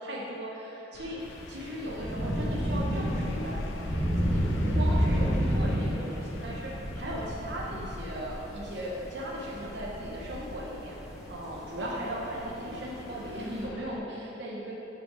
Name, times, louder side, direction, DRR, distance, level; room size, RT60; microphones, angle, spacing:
voice 1, 0.0-10.9 11.3-14.7, equal, 60° right, -4 dB, 0.8 m, -37 dB
sound 1, 0.9-14.0, left 2 dB, 80° left, 0.5 m, -43 dB
Thunder / Rain, 1.2-13.6, equal, 5° right, 0.9 m, -31 dB
5.7 x 5.0 x 4.9 m, 2.9 s
head